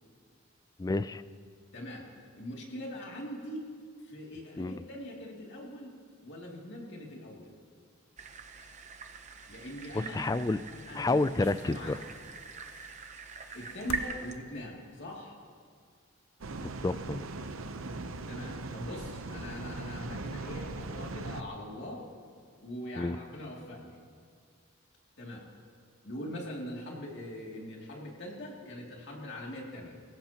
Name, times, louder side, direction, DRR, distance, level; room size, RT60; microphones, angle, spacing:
voice 1, 0.8-1.2 4.6-4.8 9.9-10.6 11.0-12.0 16.6-17.3 23.0-23.2, left 2 dB, 15° left, 15 dB, 0.3 m, -30 dB
voice 2, 1.7-2.1 2.3-3.8 4.0-5.9 6.2-7.5 9.5-12.1 13.5-15.4 18.3-22.0 22.6-24.0 25.2-25.4 26.0-30.0, equal, 55° left, -2 dB, 2.7 m, -42 dB
sound 1, 8.2-14.4, right 5 dB, 35° right, 0.8 m, -42 dB
sound 2, 11.2-15.5 16.4-16.5, left 4 dB, 75° left, 0.6 m, -49 dB
sound 3, 16.4-21.4, right 3 dB, 70° right, 0.8 m, -39 dB
24.5 x 16.0 x 3.0 m, 2.1 s
head